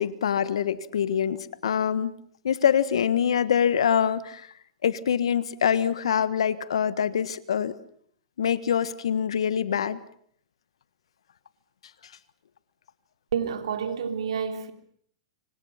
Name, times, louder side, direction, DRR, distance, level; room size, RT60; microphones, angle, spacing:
voice 1, 0.0-2.1 2.4-4.5 4.8-7.7 8.4-10.0, left 8 dB, 75° left, 1.4 m, -24 dB
voice 2, 13.3-14.7, right 7 dB, 75° right, 3.1 m, -29 dB
25.5 x 25.5 x 5.8 m
hypercardioid pair, 110°, 3 cm